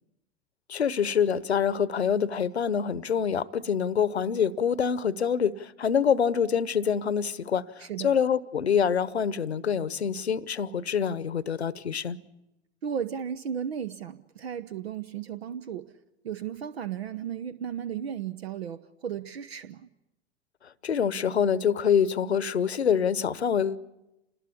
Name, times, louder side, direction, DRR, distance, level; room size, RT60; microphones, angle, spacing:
voice 1, 0.7-12.2 20.8-23.8, left 7 dB, 85° left, 0.9 m, -26 dB
voice 2, 7.8-8.1 12.8-15.9 16.2-19.9, right 8 dB, 75° right, 0.9 m, -35 dB
27.5 x 20.0 x 8.6 m
figure-of-eight pair, 85°, 31 cm